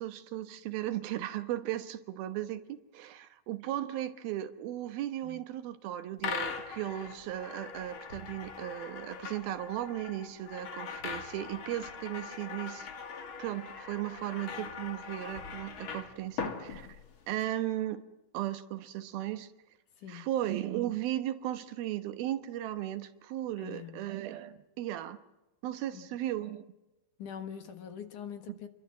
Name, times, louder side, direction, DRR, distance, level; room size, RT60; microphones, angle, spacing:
voice 1, 0.0-12.9 13.4-16.9 17.3-18.0 18.3-19.5 20.1-25.2 25.6-26.7 28.5-28.6, right 13 dB, 75° right, 10 dB, 2.9 m, -36 dB
sound 1, 6.2-17.4, left 6 dB, 45° left, 2.0 m, -41 dB
voice 2, 20.0-20.3 23.6-24.1 25.9-26.1 27.2-28.7, left 8 dB, 60° left, 8 dB, 2.7 m, -44 dB
28.0 x 22.0 x 7.6 m, 1.0 s
omnidirectional pair, 4.5 m